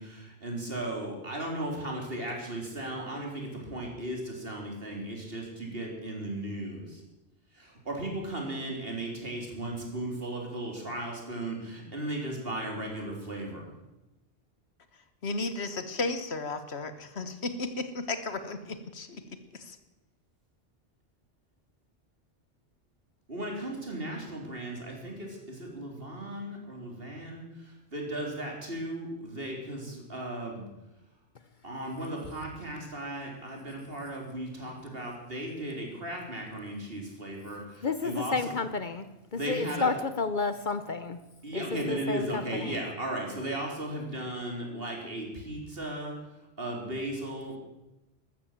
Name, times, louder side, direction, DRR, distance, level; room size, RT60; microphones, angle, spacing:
voice 1, 0.0-7.0 7.5-13.7 23.3-30.7 31.6-38.6 39.3-39.9 41.4-46.1 46.6-47.6, right 1 dB, 60° right, 0 dB, 3.9 m, -36 dB
voice 2, 15.2-19.2 19.6-19.8, left 3 dB, 75° left, 10 dB, 1.6 m, -34 dB
voice 3, 37.8-41.2 41.5-41.6 41.9-42.8, left 4 dB, 50° left, 12 dB, 0.9 m, -31 dB
14.0 x 13.0 x 7.5 m, 0.98 s
omnidirectional pair, 1.1 m